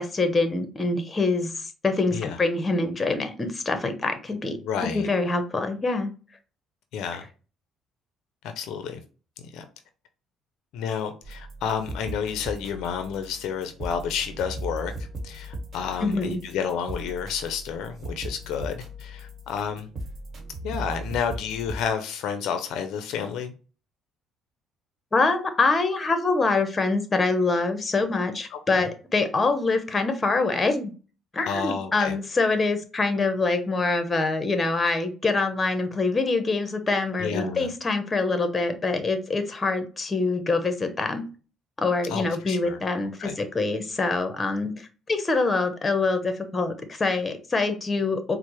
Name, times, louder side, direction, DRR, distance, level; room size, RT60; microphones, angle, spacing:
voice 1, 0.0-6.1 16.0-16.4 25.1-30.9 31.3-41.2 41.8-48.4, left 3 dB, 25° left, 0.7 m, -25 dB
voice 2, 4.6-5.1 6.9-7.2 8.6-9.0 9.5-9.6 10.7-14.9 15.2-19.9 20.6-23.5 28.5-28.9 31.5-32.1 37.2-37.7 42.1-42.8 43.2-43.3, left 7 dB, 75° left, 0.4 m, -30 dB
sound 1, 11.2-21.8, right 1 dB, 45° right, 1.1 m, -38 dB
4.3 x 2.0 x 2.9 m
supercardioid pair, 85°, 0 cm